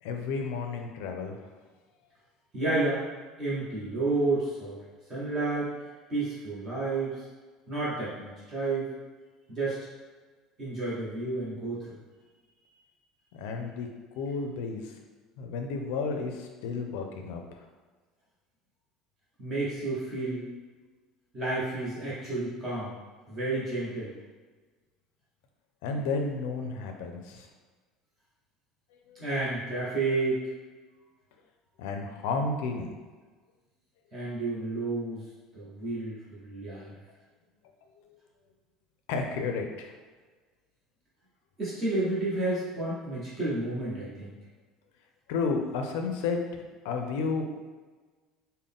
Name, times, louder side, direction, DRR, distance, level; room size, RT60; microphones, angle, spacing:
voice 1, 0.0-1.5 13.3-13.9 14.2-14.9 15.4-17.7 25.8-27.5 29.1-29.2 31.8-32.9 38.0-38.2 39.1-39.9 45.3-47.6, left 4 dB, 80° left, 4 dB, 0.5 m, -32 dB
voice 2, 2.5-3.0 3.4-4.8 5.1-5.7 6.1-7.2 7.7-8.9 9.5-9.8 10.6-11.8 19.4-20.5 21.3-22.9 23.3-24.1 29.1-30.4 34.1-35.2 35.5-36.9 41.6-44.3, right 2 dB, 20° right, -8 dB, 0.9 m, -30 dB
3.7 x 2.1 x 3.6 m, 1.4 s
cardioid pair, 175°, 0 cm